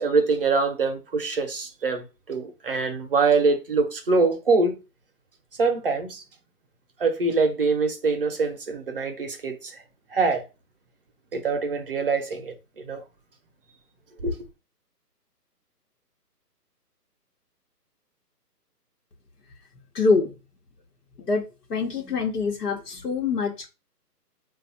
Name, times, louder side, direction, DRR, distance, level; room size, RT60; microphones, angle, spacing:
voice 1, 0.0-4.8 5.6-6.2 7.0-9.8 10.1-10.4 11.3-13.0 14.2-14.4, right 4 dB, 35° right, 0.8 m, -24 dB
voice 2, 19.9-20.3 21.2-23.7, left 4 dB, 70° left, 1.1 m, -25 dB
3.4 x 2.4 x 4.1 m
figure-of-eight pair, 150°, 49 cm